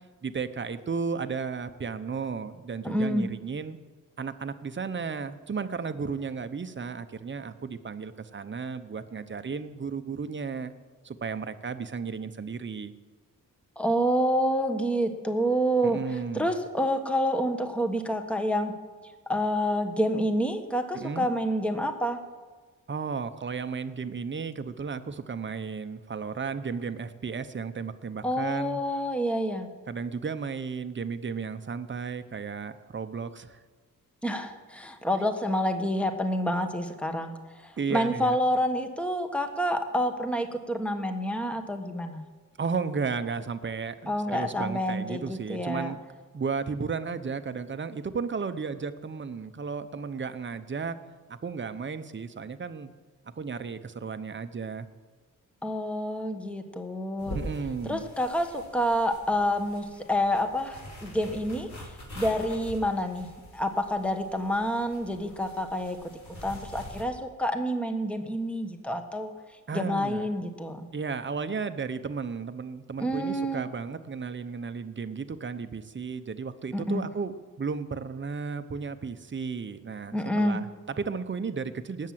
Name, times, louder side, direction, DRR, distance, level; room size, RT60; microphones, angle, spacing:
voice 1, 0.2-3.8 4.2-10.7 11.0-12.9 15.8-16.5 20.9-21.3 22.9-28.8 29.9-33.6 37.8-38.4 42.6-46.0 46.3-51.0 51.3-52.9 53.4-54.9 57.3-58.0 69.7-70.3 70.9-82.1, right 5 dB, 35° right, 10 dB, 0.9 m, -34 dB
voice 2, 2.8-3.3 13.8-18.7 19.3-22.2 28.2-29.7 34.2-42.2 44.1-45.9 55.6-57.4 57.8-61.7 62.1-66.0 66.4-69.3 69.7-70.9 73.0-73.7 76.7-77.1 80.1-80.6, equal, 5° left, 6 dB, 1.3 m, -28 dB
sound 1, 57.2-67.0, equal, 60° left, 6.0 m, -44 dB
19.0 x 7.5 x 7.6 m, 1.4 s
wide cardioid pair, 100°, 33 cm